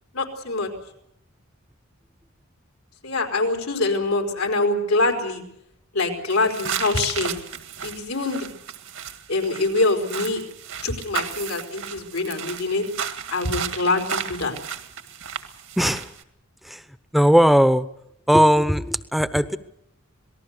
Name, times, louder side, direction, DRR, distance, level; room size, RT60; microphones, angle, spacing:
voice 1, 0.1-0.7 3.0-5.4 5.9-7.4 7.8-8.5 9.3-10.4 10.8-12.8 13.3-14.6, left 2 dB, 90° left, 3 dB, 4.6 m, -24 dB
sound 1, 6.3-16.2, right 7 dB, 75° right, 1.9 m, -34 dB
voice 2, 15.8-16.1 16.6-16.8 17.1-17.9 18.3-19.6, equal, ahead, 13 dB, 0.8 m, -18 dB
26.5 x 19.0 x 6.7 m, 0.77 s
head